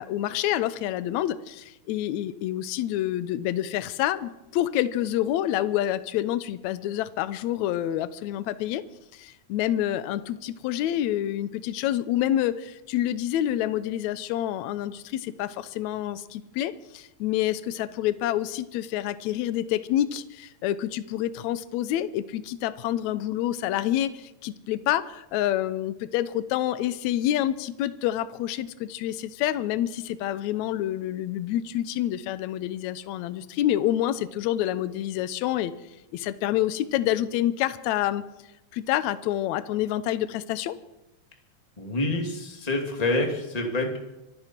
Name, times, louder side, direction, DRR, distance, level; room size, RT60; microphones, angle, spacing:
voice 1, 0.0-8.8 9.1-35.7 36.1-38.2 38.7-40.8, left 12 dB, 75° left, 14 dB, 2.0 m, -27 dB
voice 2, 41.8-44.0, left 2 dB, 15° left, 2 dB, 2.2 m, -27 dB
25.0 x 11.5 x 4.5 m, 0.96 s
omnidirectional pair, 3.5 m